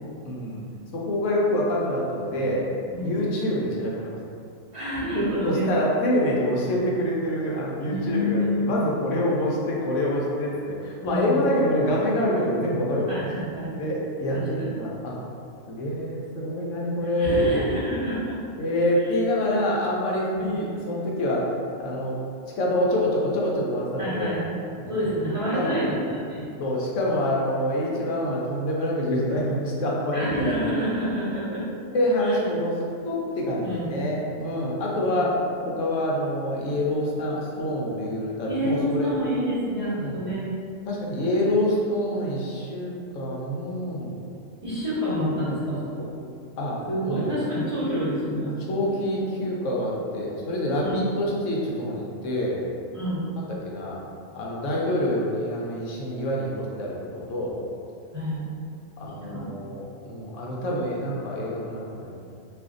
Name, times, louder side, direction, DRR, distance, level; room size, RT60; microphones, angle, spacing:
voice 1, 0.2-0.6 0.9-2.7 3.0-4.1 5.4-13.2 13.8-15.2 15.7-17.4 18.6-21.5 21.8-22.2 22.6-24.4 24.8-25.1 25.5-25.9 26.6-30.6 31.9-35.4 35.6-39.1 40.0-40.2 40.9-44.2 46.6-46.8 47.0-47.3 48.7-52.6 53.5-54.0 54.3-57.6 59.0-62.2, left 1 dB, 75° left, -4 dB, 1.0 m, -26 dB
voice 2, 4.7-5.7 7.8-8.9 11.0-11.4 13.1-13.8 14.3-14.7 17.2-18.4 20.3-20.6 24.0-24.4 24.9-26.4 30.1-31.6 32.2-32.4 33.6-33.9 35.1-35.3 38.4-40.4 44.6-46.1 46.9-48.8 50.8-51.0 52.9-53.2 58.1-58.5 59.0-59.5, equal, 30° right, -12 dB, 0.8 m, -28 dB
2.5 x 2.5 x 3.6 m, 2.4 s
omnidirectional pair, 1.3 m